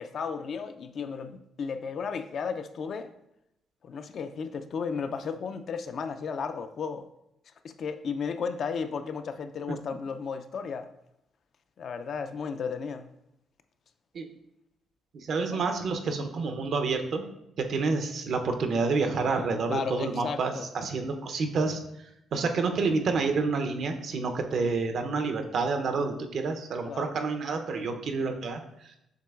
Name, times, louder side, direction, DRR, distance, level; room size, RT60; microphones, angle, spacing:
voice 1, 0.0-3.1 3.8-7.1 7.6-10.9 11.8-13.1 19.7-20.7 25.9-26.3 26.9-27.1, left 5 dB, 60° left, 9 dB, 0.3 m, -34 dB
voice 2, 15.1-17.2 17.6-29.0, right 4 dB, 60° right, 6 dB, 0.5 m, -29 dB
7.4 x 3.0 x 2.3 m, 0.82 s
cardioid pair, 90°, 0 cm